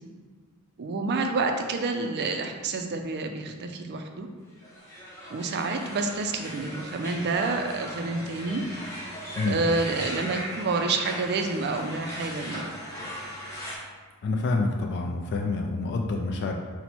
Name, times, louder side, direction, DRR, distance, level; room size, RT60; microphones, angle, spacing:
voice 1, 0.8-4.3 5.3-8.6 9.4-12.7, right 3 dB, 50° right, 5 dB, 0.4 m, -28 dB
sound 1, 4.5-13.8, equal, 15° left, 0.9 m, -38 dB
voice 2, 14.2-16.6, left 3 dB, 50° left, 2 dB, 0.3 m, -27 dB
4.2 x 2.1 x 4.2 m, 1.5 s
head